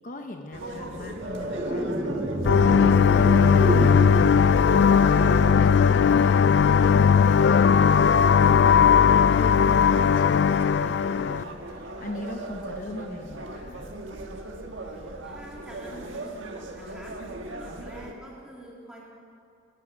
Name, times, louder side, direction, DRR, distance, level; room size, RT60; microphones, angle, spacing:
voice 1, 0.0-6.5 6.8-8.9 9.3-13.9, left 2 dB, 45° left, 4 dB, 0.8 m, -40 dB
sound 1, 0.5-18.1, right 2 dB, 90° right, 1.5 m, -39 dB
sound 2, 0.7-11.2, right 2 dB, 35° right, 0.9 m, -33 dB
sound 3, 2.4-11.4, left 6 dB, 65° left, 0.3 m, -18 dB
voice 2, 15.2-17.1 17.6-19.0, right 1 dB, 5° right, -5 dB, 3.2 m, -46 dB
19.5 x 14.0 x 5.2 m, 2.7 s
head